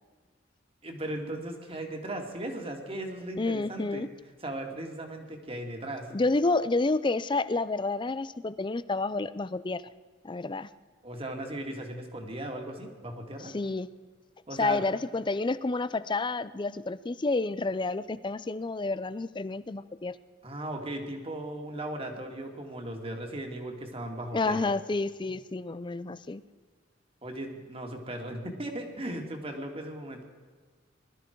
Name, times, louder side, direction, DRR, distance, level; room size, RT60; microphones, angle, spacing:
voice 1, 0.8-4.1 4.4-6.1 11.0-13.5 14.5-14.8 20.4-24.7 27.2-30.2, right 1 dB, 30° right, 3 dB, 2.3 m, -37 dB
voice 2, 3.4-4.1 6.1-9.8 10.2-10.7 13.4-13.9 14.6-20.2 24.3-26.4, left 3 dB, 25° left, 16 dB, 0.5 m, -29 dB
21.0 x 13.0 x 4.6 m, 1.6 s
head